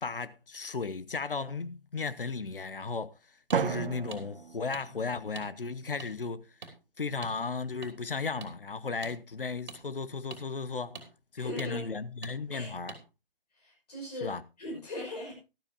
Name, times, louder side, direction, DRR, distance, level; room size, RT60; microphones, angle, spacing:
voice 1, 0.0-3.1 3.5-6.5 7.0-11.0 11.3-12.9 14.2-14.4, left 4 dB, 65° left, 1.0 m, -35 dB
sound 1, 3.5-3.6 4.1-4.2 4.7-4.8 5.4-5.5 6.0-6.1 6.6-6.7 7.2-7.4 7.8-7.9 8.4-8.5 9.0-9.2 9.7-9.8 10.3-10.4 11.0-11.1 11.6-11.7 12.2-12.4 12.9-13.0, right 5 dB, 45° right, 2.7 m, -44 dB
Drum, 3.5-5.5, right 6 dB, 70° right, 0.5 m, -34 dB
voice 2, 11.4-12.0 12.5-12.7 13.5-15.4, left 1 dB, 45° left, 5.9 m, -39 dB
13.5 x 12.0 x 2.7 m
figure-of-eight pair, 145°, 29 cm